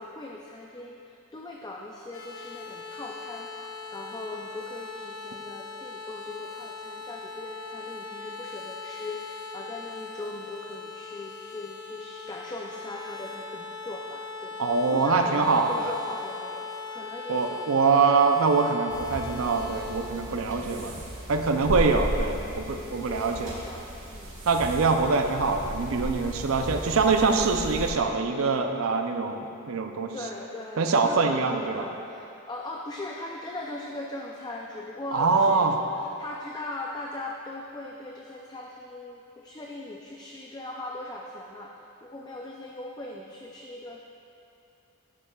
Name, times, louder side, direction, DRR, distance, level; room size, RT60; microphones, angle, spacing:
voice 1, 0.0-17.7 20.3-20.8 21.5-24.3 26.2-26.3 30.1-35.6 35.9-44.0, left 2 dB, 20° left, -1 dB, 0.4 m, -40 dB
sound 1, 2.1-20.1, left 4 dB, 70° left, 0.9 m, -40 dB
voice 2, 14.6-15.9 17.3-21.0 21.3-23.5 24.5-30.1 30.8-31.9 35.1-35.8, right 4 dB, 85° right, 5 dB, 0.5 m, -24 dB
sound 2, 18.9-27.9, equal, 65° right, 1.6 m, -36 dB
11.0 x 7.5 x 2.3 m, 2.7 s
head